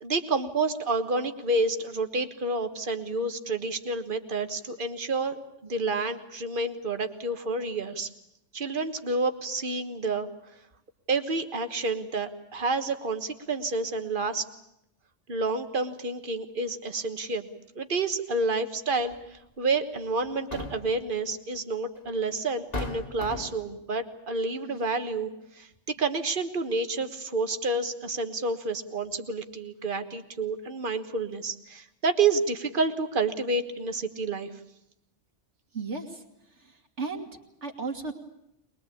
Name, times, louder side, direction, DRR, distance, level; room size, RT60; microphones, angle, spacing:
voice 1, 0.0-8.1 8.5-10.3 11.1-14.5 15.3-17.5 17.7-19.1 19.6-25.3 25.6-34.5, right 3 dB, 45° right, 8 dB, 1.6 m, -29 dB
sound 1, 19.1-19.3 20.2-21.0 22.1-22.2 22.7-23.7, left 2 dB, 35° left, 2.3 m, -35 dB
voice 2, 35.7-36.2 36.6-37.3 37.6-38.1, right 4 dB, 70° right, 4 dB, 2.8 m, -34 dB
22.0 x 22.0 x 8.5 m, 0.82 s
omnidirectional pair, 1.2 m